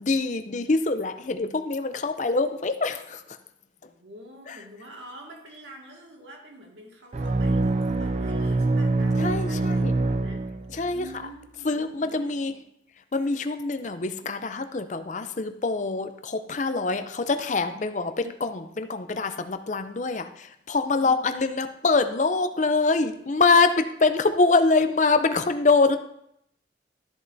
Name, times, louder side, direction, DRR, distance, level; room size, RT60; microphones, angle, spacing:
voice 1, 0.0-3.2 4.5-4.6 9.2-9.9 10.7-11.1 11.6-12.5 13.1-26.0, left 3 dB, 40° left, 9 dB, 0.5 m, -24 dB
voice 2, 3.8-10.4 10.9-12.6 21.0-21.4, equal, 75° right, 0 dB, 2.0 m, -46 dB
sound 1, 7.1-11.0, right 2 dB, 35° right, 0.4 m, -24 dB
13.0 x 7.5 x 2.7 m, 0.78 s
head